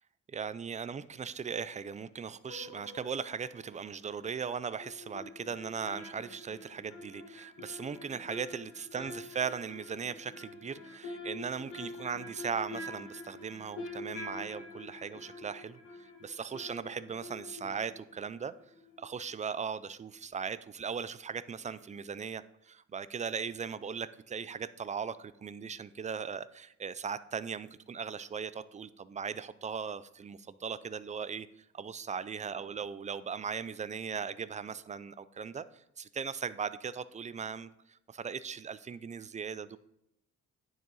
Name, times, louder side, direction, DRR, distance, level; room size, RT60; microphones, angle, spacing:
voice 1, 0.3-18.5 19.0-31.5 31.7-39.8, right 6 dB, 25° right, 15 dB, 0.4 m, -38 dB
sound 1, 2.5-3.7 4.8-19.3 19.6-19.7, left 2 dB, 80° left, 1.8 m, -46 dB
10.0 x 4.6 x 3.9 m, 0.79 s
cardioid pair, 90°, 30 cm